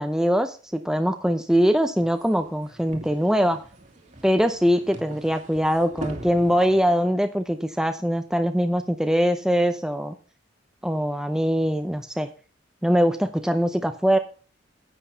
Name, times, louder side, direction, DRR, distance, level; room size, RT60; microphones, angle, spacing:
voice 1, 0.0-3.6 4.2-10.1 10.8-12.3 12.8-14.2, equal, 5° right, 7 dB, 0.7 m, -22 dB
sound 1, 2.0-7.0, right 1 dB, 40° right, 2.1 m, -41 dB
10.0 x 8.1 x 5.3 m, 0.36 s
head